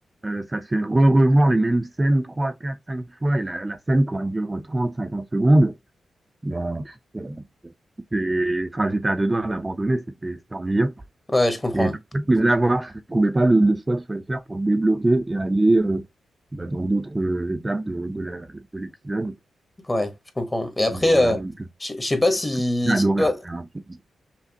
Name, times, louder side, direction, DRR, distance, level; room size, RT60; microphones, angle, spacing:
voice 1, 0.2-5.7 6.4-7.4 8.1-10.9 11.7-16.0 16.5-19.3 20.9-21.5 22.8-23.6, right 1 dB, 20° right, 0.5 m, -22 dB
voice 2, 11.3-11.9 19.9-21.4 21.8-23.4, left 1 dB, 20° left, 1.0 m, -22 dB
5.8 x 2.2 x 2.7 m
cardioid pair, 80°, 0 cm